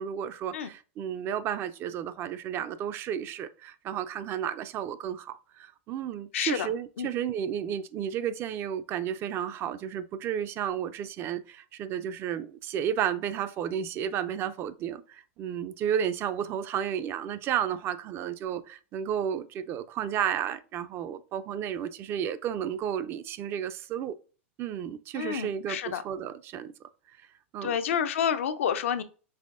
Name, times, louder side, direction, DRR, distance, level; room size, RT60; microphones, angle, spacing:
voice 1, 0.0-24.1 24.6-26.7 27.5-27.8, right 9 dB, 35° right, 0.4 m, -32 dB
voice 2, 6.3-6.7 7.0-7.1 25.2-26.0 27.6-29.0, left 8 dB, 75° left, 0.5 m, -29 dB
5.4 x 3.4 x 2.5 m
hypercardioid pair, 125°, 7 cm